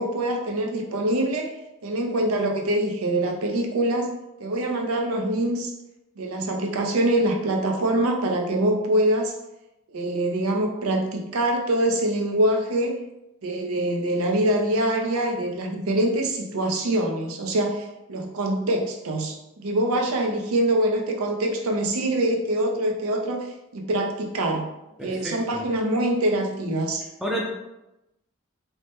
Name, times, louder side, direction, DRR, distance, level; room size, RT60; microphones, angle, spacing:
voice 1, 0.0-1.5 1.8-4.1 4.4-5.7 6.2-9.3 9.9-13.0 13.4-23.5 23.7-24.7 25.0-27.1, right 1 dB, 90° right, 2 dB, 0.5 m, -24 dB
voice 2, 25.0-25.7 27.2-27.5, right 1 dB, ahead, -3 dB, 0.4 m, -30 dB
2.8 x 2.1 x 3.3 m, 0.93 s
head